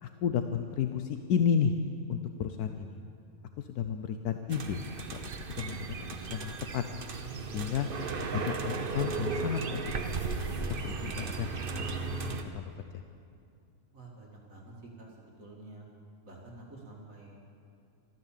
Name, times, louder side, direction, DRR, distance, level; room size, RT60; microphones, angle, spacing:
voice 1, 0.0-1.7 2.1-3.0 3.6-4.8 5.5-5.8 6.3-6.8 7.5-7.9 8.3-9.8 10.8-11.5 11.7-13.0, left 7 dB, 80° left, 7 dB, 1.2 m, -32 dB
sound 1, 4.5-12.4, right 4 dB, 45° right, 0.9 m, -35 dB
voice 2, 13.9-15.9 16.2-17.6, right 2 dB, 60° right, -2 dB, 2.4 m, -49 dB
13.5 x 13.5 x 7.3 m, 2.4 s
omnidirectional pair, 1.6 m